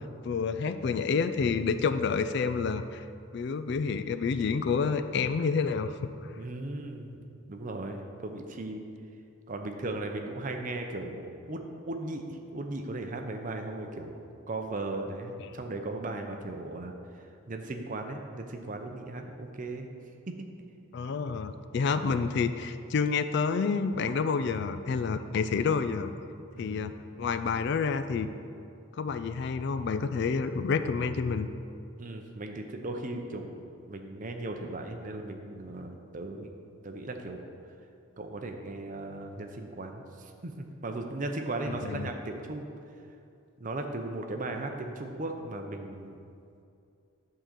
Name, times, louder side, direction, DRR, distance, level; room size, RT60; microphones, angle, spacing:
voice 1, 0.2-3.0 3.3-5.9 15.4-15.5 20.9-26.1 26.6-26.9 27.2-28.3 28.9-31.5 41.7-42.1, left 5 dB, 55° left, 11 dB, 0.3 m, -29 dB
voice 2, 6.3-7.2 7.5-8.8 9.5-19.9 20.3-20.5 26.5-27.0 32.0-36.5 36.8-37.4 38.2-42.7 43.6-46.2, right 2 dB, 40° right, 4 dB, 0.6 m, -37 dB
8.9 x 3.8 x 6.7 m, 2.5 s
head